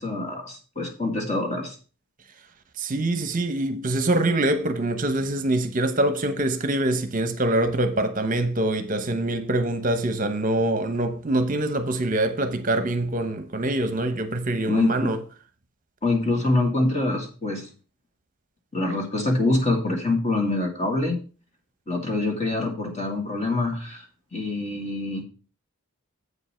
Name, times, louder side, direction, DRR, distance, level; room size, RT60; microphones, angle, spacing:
voice 1, 0.0-1.8 14.7-15.1 16.0-17.7 18.7-21.2 21.9-24.1 24.3-25.2, left 2 dB, 30° left, 2.0 m, -25 dB
voice 2, 2.8-15.2, right 1 dB, 35° right, 0.9 m, -24 dB
8.1 x 5.5 x 5.6 m
head